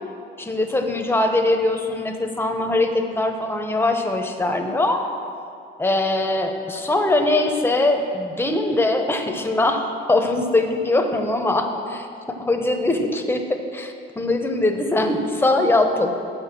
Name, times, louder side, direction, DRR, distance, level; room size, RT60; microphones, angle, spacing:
voice 1, 0.4-5.0 5.8-11.7 12.4-16.1, left 2 dB, 10° left, 4 dB, 0.9 m, -21 dB
8.0 x 7.0 x 6.0 m, 2.5 s
cardioid pair, 90°, 20 cm